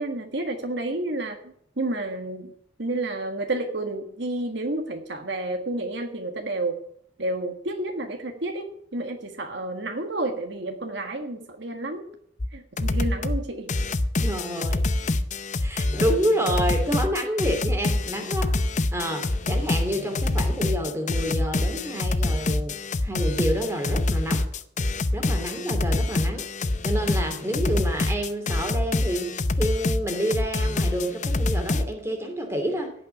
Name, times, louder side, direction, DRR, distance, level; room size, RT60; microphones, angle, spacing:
voice 1, 0.0-2.5 2.8-6.8 7.2-12.1 12.5-13.7, right 2 dB, 60° right, 4 dB, 1.5 m, -30 dB
sound 1, 12.4-12.5 12.8-13.4 13.7-31.9, left 2 dB, 35° left, 0.7 m, -25 dB
voice 2, 14.2-15.1 15.6-18.5 18.9-22.8 23.0-24.4 25.1-26.5 26.8-29.3 29.6-32.9, right 1 dB, 15° right, 3 dB, 2.8 m, -28 dB
17.0 x 5.9 x 10.0 m, 0.69 s
head